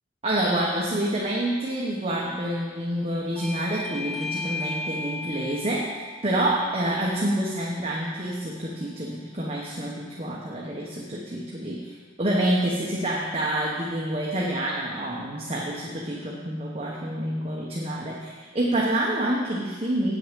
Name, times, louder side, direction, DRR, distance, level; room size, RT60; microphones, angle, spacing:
voice 1, 0.2-5.9 6.2-20.2, right 1 dB, 30° right, -3 dB, 1.1 m, -27 dB
Bell / Doorbell, 3.4-8.5, left 3 dB, ahead, 0.6 m, -37 dB
8.9 x 6.4 x 8.2 m, 1.5 s
head